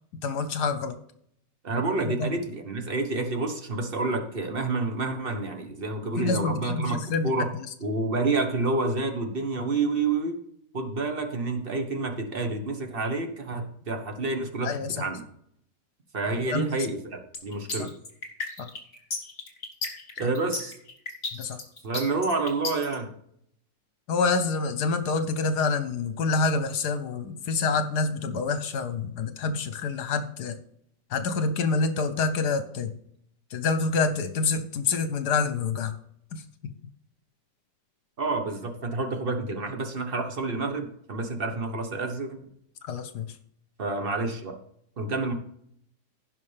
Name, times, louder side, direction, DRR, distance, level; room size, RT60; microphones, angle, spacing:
voice 1, 0.2-1.0 2.1-2.3 6.2-7.3 14.6-15.0 16.5-16.9 17.8-17.9 21.3-21.6 24.1-30.6 31.1-32.9 33.5-35.9 36.3-36.4 42.9-43.3, left 4 dB, 70° left, 10 dB, 1.3 m, -27 dB
voice 2, 1.6-7.0 7.2-7.5 7.8-10.3 10.7-15.2 16.1-17.9 20.2-20.7 21.8-23.1 38.2-42.4 43.8-44.6 45.0-45.3, right 3 dB, 35° right, 5 dB, 1.2 m, -29 dB
sound 1, 17.3-23.0, left 3 dB, 45° left, 2.1 m, -33 dB
16.5 x 5.5 x 3.3 m, 0.69 s
omnidirectional pair, 1.8 m